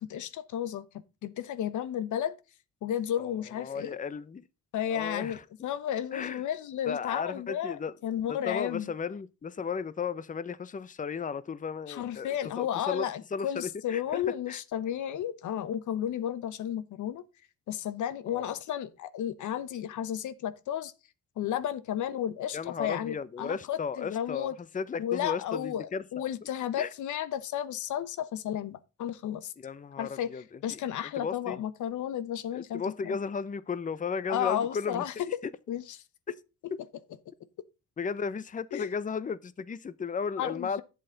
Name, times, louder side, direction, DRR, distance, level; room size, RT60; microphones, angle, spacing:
voice 1, 0.1-0.9 1.2-2.3 2.8-4.0 4.7-8.9 11.9-17.2 17.7-20.9 21.4-24.5 25.0-29.5 30.0-33.2 34.3-35.1 35.7-35.8 38.7-38.9 40.4-40.8, left 10 dB, 75° left, 1.1 m, -33 dB
voice 2, 3.2-4.5 4.9-5.4 6.1-6.4 6.9-7.9 8.3-12.3 12.6-14.6 18.3-18.5 22.5-26.3 26.8-26.9 29.6-30.8 31.2-31.6 32.5-35.2 38.0-40.8, left 6 dB, 25° left, 0.7 m, -35 dB
11.0 x 8.1 x 3.9 m
cardioid pair, 90°, 30 cm